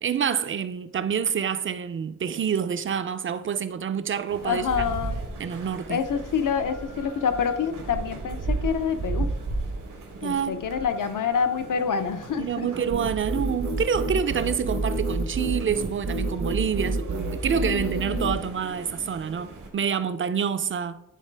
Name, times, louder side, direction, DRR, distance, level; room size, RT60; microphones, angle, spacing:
voice 1, 0.0-4.8 5.4-6.0 10.2-10.6 12.4-21.0, right 7 dB, 40° right, 0.4 m, -27 dB
sound 1, 4.3-19.7, right 3 dB, 85° right, 1.4 m, -36 dB
voice 2, 4.4-5.2 5.9-9.3 10.2-12.7 17.5-18.5, left 6 dB, 80° left, 0.7 m, -27 dB
sound 2, 12.9-18.4, right 2 dB, 60° right, 0.8 m, -28 dB
10.0 x 4.0 x 3.3 m
wide cardioid pair, 140°, 32 cm